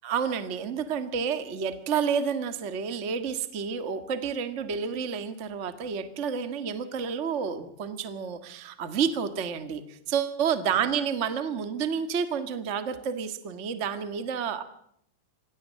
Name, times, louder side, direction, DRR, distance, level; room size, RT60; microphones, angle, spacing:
voice 1, 0.0-14.6, right 6 dB, 85° right, 10 dB, 0.6 m, -30 dB
25.5 x 17.0 x 7.5 m, 0.70 s
omnidirectional pair, 4.4 m